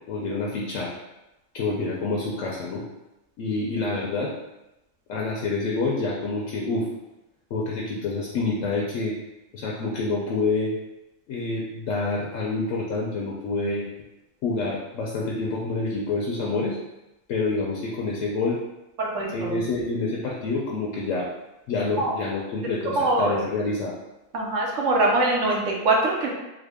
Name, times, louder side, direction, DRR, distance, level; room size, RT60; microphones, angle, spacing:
voice 1, 0.1-0.9 1.5-2.8 3.4-4.3 5.1-6.9 7.5-9.1 9.5-10.7 11.3-13.9 14.4-16.8 17.3-18.6 19.3-21.3 21.7-23.9, left 3 dB, 70° left, -3 dB, 0.9 m, -27 dB
voice 2, 19.0-19.6 22.0-22.1 23.0-23.3 24.3-26.3, right 2 dB, 70° right, -1 dB, 1.0 m, -23 dB
3.6 x 2.0 x 3.4 m, 0.97 s
omnidirectional pair, 1.4 m